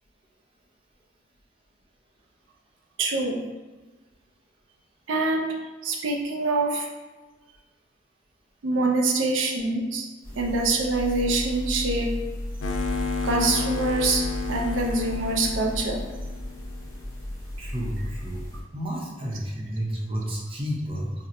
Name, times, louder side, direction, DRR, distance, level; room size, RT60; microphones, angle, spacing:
voice 1, 3.0-3.4 5.1-5.5 5.8-6.9 8.6-10.1 10.4-12.1 13.2-16.0, right 2 dB, 85° right, 0 dB, 0.4 m, -25 dB
sound 1, 10.2-18.6, left 1 dB, 15° left, 0.7 m, -35 dB
sound 2, 12.6-17.0, left 3 dB, 80° left, 0.3 m, -31 dB
voice 2, 17.6-18.5 18.7-21.1, equal, 30° right, -3 dB, 0.6 m, -31 dB
4.1 x 2.0 x 2.5 m, 1.2 s
head